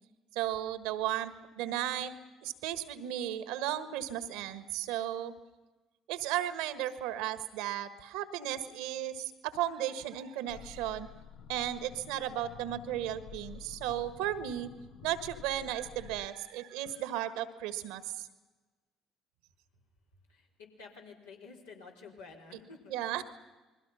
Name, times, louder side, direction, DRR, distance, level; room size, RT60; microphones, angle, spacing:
voice 1, 0.3-2.1 2.4-5.3 6.1-11.1 11.5-14.7 15.0-18.3 22.9-23.2, right 12 dB, 70° right, 14 dB, 1.5 m, -35 dB
sound 1, 10.5-16.3, left 8 dB, 65° left, 1.0 m, -50 dB
voice 2, 20.3-23.2, left 4 dB, 85° left, -2 dB, 4.4 m, -51 dB
28.5 x 21.5 x 5.7 m, 1.2 s
hypercardioid pair, 55°, 0 cm